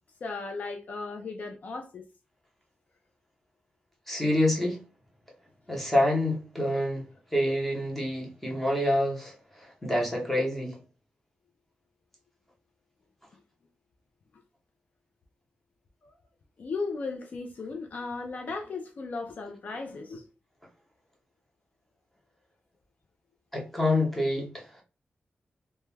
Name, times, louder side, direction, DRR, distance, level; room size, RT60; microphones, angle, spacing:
voice 1, 0.2-2.1 16.0-16.1 16.6-20.2, left 3 dB, 55° left, 0.3 m, -36 dB
voice 2, 4.1-4.8 5.7-7.0 7.3-10.8 23.5-24.8, left 1 dB, 5° left, 0.7 m, -27 dB
2.2 x 2.1 x 3.1 m
wide cardioid pair, 175°, 3 cm